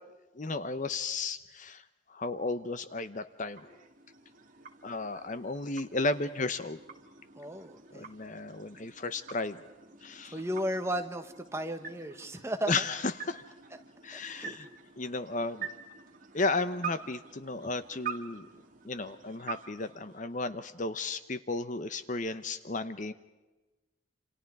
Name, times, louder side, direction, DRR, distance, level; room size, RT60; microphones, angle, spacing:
voice 1, 0.4-1.8 2.1-3.8 4.8-6.8 7.9-9.6 10.0-10.3 12.7-13.0 13.3-13.4 14.0-14.7 15.0-15.7 16.3-18.5 18.8-23.1, left 3 dB, 40° left, 12 dB, 0.9 m, -34 dB
sound 1, 3.0-20.8, right 6 dB, 40° right, 2.3 m, -46 dB
voice 2, 7.3-8.1 10.3-12.7 14.3-14.6, equal, 15° right, 6 dB, 1.6 m, -34 dB
28.5 x 27.0 x 4.8 m, 1.1 s
head